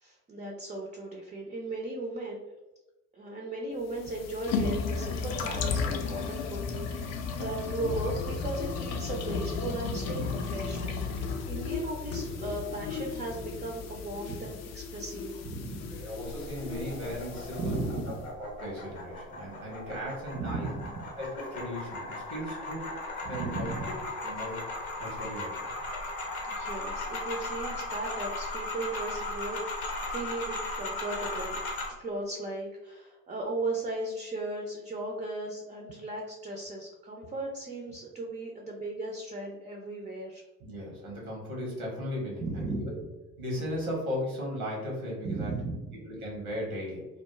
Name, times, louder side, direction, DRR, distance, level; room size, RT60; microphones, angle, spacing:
voice 1, 0.0-2.4 3.1-16.0 17.6-18.2 20.3-20.9 23.2-23.9 26.6-31.6 32.0-40.4 42.4-43.1 45.2-46.0, right 2 dB, 20° right, 0 dB, 0.4 m, -36 dB
sound 1, 3.9-18.2, left 5 dB, 40° left, 0.4 m, -34 dB
voice 2, 15.8-18.0 18.4-20.7 21.2-22.9 23.3-23.7 24.2-25.7 40.6-43.0 43.4-45.5 46.1-47.1, equal, 85° right, -2 dB, 0.9 m, -37 dB
sound 2, 16.2-31.9, left 2 dB, 80° left, 0.6 m, -37 dB
2.3 x 2.0 x 2.9 m, 1.1 s
figure-of-eight pair, 50°, 42 cm